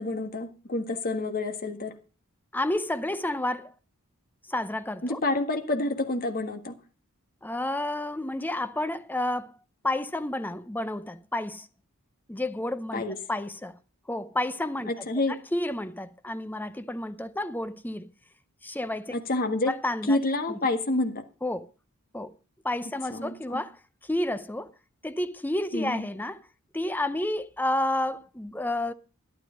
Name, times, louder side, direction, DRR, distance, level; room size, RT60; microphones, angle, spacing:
voice 1, 0.0-1.9 5.0-6.8 12.9-13.2 14.9-15.4 19.1-19.7 20.1-21.2 23.1-23.6 25.7-26.0, left 2 dB, 40° left, 1.7 m, -28 dB
voice 2, 2.5-3.7 4.5-5.2 7.4-9.5 9.8-11.7 12.3-13.0 13.3-13.8 14.1-14.9 15.5-18.1 18.6-19.1 19.7-20.2 21.4-21.7 22.1-22.3 22.6-23.8 24.0-24.7 25.0-26.4 26.7-28.9, left 1 dB, 10° left, 0.6 m, -30 dB
12.5 x 11.5 x 5.1 m
head